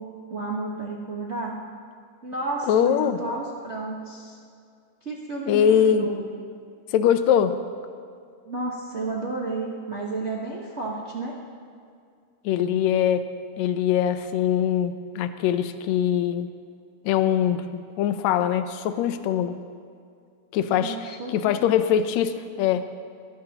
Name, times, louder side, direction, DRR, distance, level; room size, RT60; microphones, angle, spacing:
voice 1, 0.0-1.5 2.2-4.4 5.0-6.2 8.5-11.4 20.7-21.5 21.9-22.0, right 3 dB, 70° right, -4 dB, 0.6 m, -32 dB
voice 2, 2.7-3.2 5.5-6.1 6.9-7.6 12.5-13.3 13.6-16.5 17.1-19.6 20.5-23.0, left 9 dB, 75° left, 10 dB, 1.8 m, -22 dB
22.5 x 17.5 x 3.0 m, 2.3 s
omnidirectional pair, 3.7 m